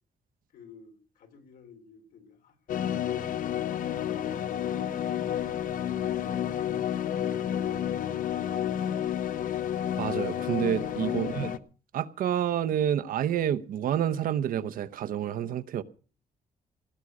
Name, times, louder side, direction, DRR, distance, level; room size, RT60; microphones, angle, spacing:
voice 1, 0.5-3.3, left 6 dB, 85° left, 3.2 m, -51 dB
sound 1, 2.7-11.6, left 10 dB, 65° left, 0.9 m, -30 dB
voice 2, 10.0-11.6 11.9-15.8, right 10 dB, 75° right, 0.9 m, -28 dB
18.0 x 6.3 x 9.7 m
cardioid pair, 155°, 14 cm